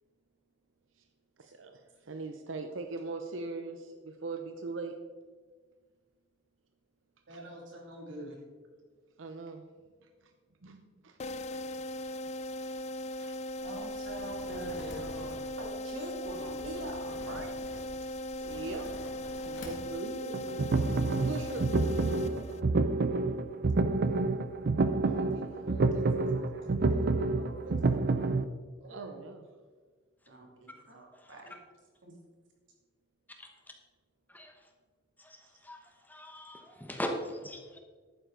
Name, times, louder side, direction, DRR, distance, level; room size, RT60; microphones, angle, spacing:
voice 1, 1.4-4.9 9.2-9.6 10.6-11.2 11.5-11.6 12.0-12.2 12.6-12.8 13.1-13.4 18.4-18.9 19.4-20.4 21.2-21.6 22.3-22.6 28.9-29.5, right 3 dB, 90° right, 6 dB, 0.8 m, -41 dB
voice 2, 7.3-8.4 13.6-18.5 21.8-22.4 25.0-27.0 27.4-28.1 28.8-29.2 30.3-31.6 32.0-32.1 35.4-35.5, right 1 dB, 70° right, -1 dB, 2.7 m, -46 dB
sound 1, 11.2-22.9, left 1 dB, 35° left, 0.4 m, -39 dB
sound 2, 13.6-19.9, left 1 dB, 75° left, 2.0 m, -48 dB
sound 3, 20.3-28.5, right 3 dB, 55° right, 0.5 m, -28 dB
voice 3, 36.1-37.8, equal, 10° left, 3 dB, 1.1 m, -39 dB
11.0 x 9.3 x 3.9 m, 1.5 s
head